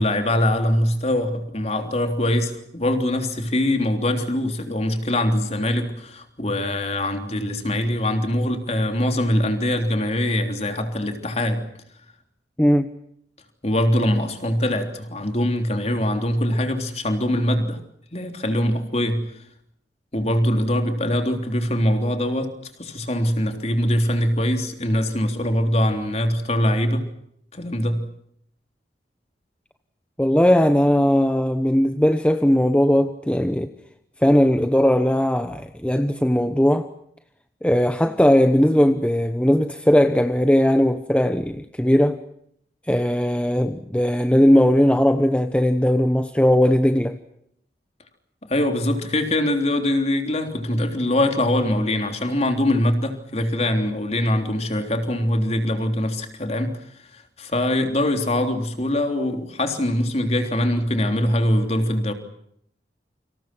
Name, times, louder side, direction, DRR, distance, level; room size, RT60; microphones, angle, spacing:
voice 1, 0.0-11.7 13.6-17.8 18.1-19.3 20.1-27.1 27.5-28.1 48.4-56.8 57.1-62.1, left 1 dB, 35° left, 3.5 m, -23 dB
voice 2, 12.6-12.9 30.2-33.7 34.2-36.9 37.6-42.2 42.9-47.2, equal, 5° left, 1.0 m, -18 dB
29.5 x 26.0 x 6.0 m
head